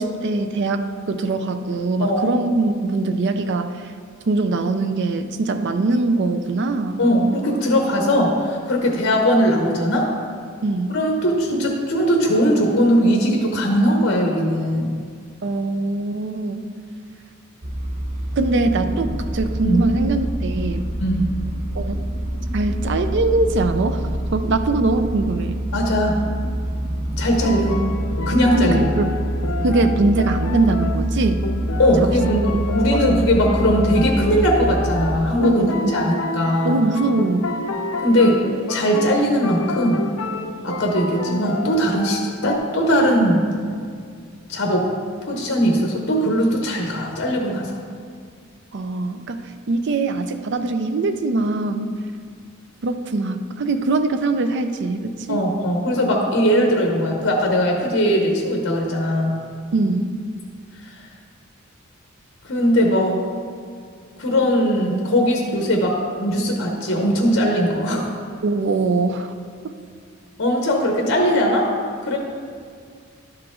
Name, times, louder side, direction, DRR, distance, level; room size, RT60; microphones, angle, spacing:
voice 1, 0.0-3.9 4.3-7.0 8.0-8.1 10.6-10.9 15.4-16.7 18.4-20.9 21.7-22.0 22.5-25.6 28.6-29.2 29.6-31.5 32.9-33.2 35.4-35.9 36.6-37.4 48.7-51.9 52.8-55.4 59.7-60.1 68.4-69.3, right 3 dB, 60° right, 8 dB, 0.5 m, -22 dB
voice 2, 7.0-10.1 10.9-14.9 19.6-19.8 21.0-21.3 25.7-26.2 27.2-27.8 28.3-28.8 31.8-32.5 32.7-35.6 35.9-36.8 38.0-38.4 38.7-40.0 40.6-43.5 44.5-44.9 45.2-47.8 55.3-59.4 60.8-60.9 62.4-63.2 64.2-68.1 70.4-71.7 72.0-72.2, equal, 60° left, 0 dB, 1.0 m, -19 dB
sound 1, 17.6-35.2, right 1 dB, 40° right, 0.8 m, -26 dB
sound 2, 27.2-42.6, left 3 dB, 80° left, 0.5 m, -30 dB
11.5 x 4.9 x 3.7 m, 2.1 s
head